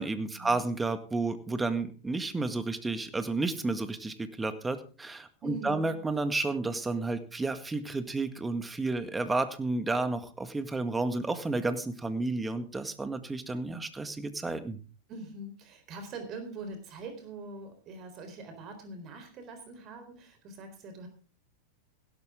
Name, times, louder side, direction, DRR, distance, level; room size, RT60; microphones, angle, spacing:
voice 1, 0.0-14.8, right 3 dB, 10° right, 10 dB, 1.8 m, -31 dB
voice 2, 5.4-5.9 15.1-21.1, right 2 dB, 40° right, 7 dB, 4.1 m, -43 dB
16.5 x 12.5 x 3.7 m, 0.35 s
hypercardioid pair, 100°, 0 cm